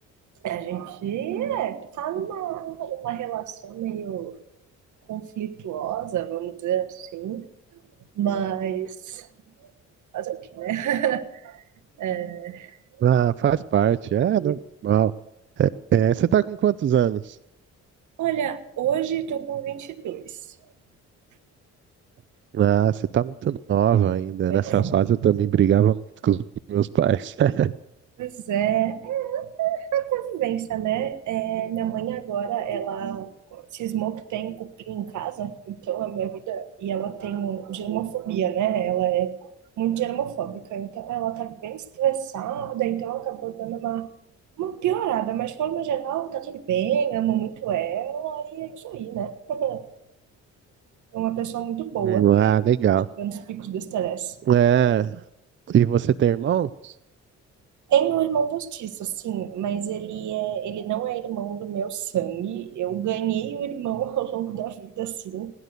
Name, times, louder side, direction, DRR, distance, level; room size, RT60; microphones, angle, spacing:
voice 1, 0.4-4.4 5.1-7.5 8.2-9.3 10.1-11.6 12.0-12.8 14.4-14.5 18.2-20.4 24.5-24.9 28.2-39.4 39.8-44.1 44.6-49.9 51.1-52.3 53.2-54.4 57.9-65.5, right 10 dB, 75° right, 9 dB, 1.4 m, -28 dB
voice 2, 13.0-15.1 15.6-17.4 22.5-26.0 26.2-27.7 52.0-53.1 54.5-55.2 55.7-56.9, right 10 dB, 40° right, 15 dB, 0.5 m, -21 dB
17.5 x 11.0 x 6.6 m, 0.81 s
cardioid pair, 90°, 30 cm